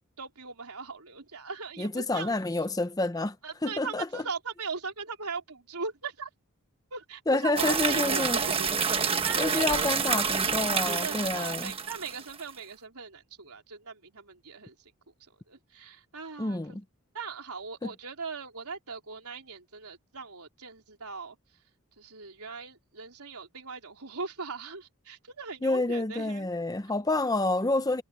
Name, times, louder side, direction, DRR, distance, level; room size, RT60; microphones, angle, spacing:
voice 1, 0.2-2.3 3.4-6.3 6.9-8.7 8.9-10.0 10.9-14.7 15.5-16.6 17.1-21.4 22.0-26.5, right 4 dB, 90° right, 3.8 m, -39 dB
voice 2, 1.8-3.4 3.6-4.2 7.3-8.4 9.4-11.8 16.4-16.8 17.8-17.9 25.6-28.0, left 2 dB, 15° left, 0.6 m, -28 dB
sound 1, 7.6-12.4, right 5 dB, 25° right, 1.4 m, -28 dB
head